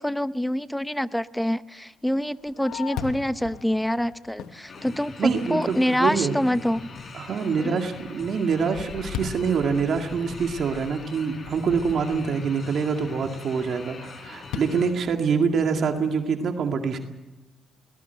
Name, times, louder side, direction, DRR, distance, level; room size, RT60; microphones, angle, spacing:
voice 1, 0.0-6.9 7.6-7.8, equal, 5° left, 14 dB, 0.8 m, -26 dB
Fireworks, 2.1-5.6 6.1-6.2 6.8-7.2 7.6-12.4 14.5-15.9, left 9 dB, 90° left, 1.2 m, -39 dB
sound 1, 4.7-14.9, left 4 dB, 45° left, 4.1 m, -42 dB
voice 2, 5.2-6.3 7.1-17.0, right 5 dB, 60° right, 4 dB, 2.1 m, -25 dB
21.0 x 19.0 x 8.1 m, 1.0 s
cardioid pair, 90°, 0 cm